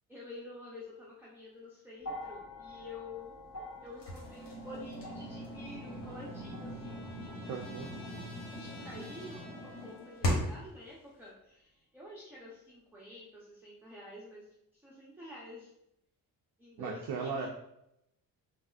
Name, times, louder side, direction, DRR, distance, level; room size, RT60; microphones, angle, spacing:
voice 1, 0.1-3.4 3.8-7.3 7.9-11.7 11.9-14.4 14.8-15.7 16.6-17.5, left 2 dB, 5° right, -6 dB, 0.7 m, -49 dB
sound 1, 2.0-10.3 11.4-11.5, left 1 dB, 35° left, 1.4 m, -49 dB
sound 2, 4.0-10.7, equal, 65° left, 1.1 m, -39 dB
Trumpet, 5.4-10.5, left 1 dB, 10° left, 1.2 m, -54 dB
voice 2, 7.5-7.9 16.8-17.5, right 5 dB, 55° right, 0 dB, 0.5 m, -37 dB
3.4 x 2.1 x 2.4 m, 0.80 s
supercardioid pair, 55°, 45 cm